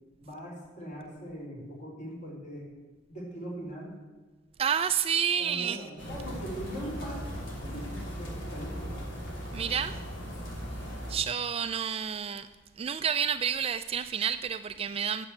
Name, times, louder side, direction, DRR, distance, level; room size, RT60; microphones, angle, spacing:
voice 1, 0.2-2.7 3.1-3.9 5.4-7.2 7.6-8.9, equal, 40° left, -3 dB, 3.9 m, -40 dB
voice 2, 4.6-5.8 9.5-10.0 11.1-12.5 12.8-15.3, right 8 dB, 30° right, 11 dB, 0.3 m, -29 dB
sound 1, 6.0-11.2, equal, 85° left, 2.8 m, -38 dB
8.7 x 7.3 x 8.2 m, 1.3 s
head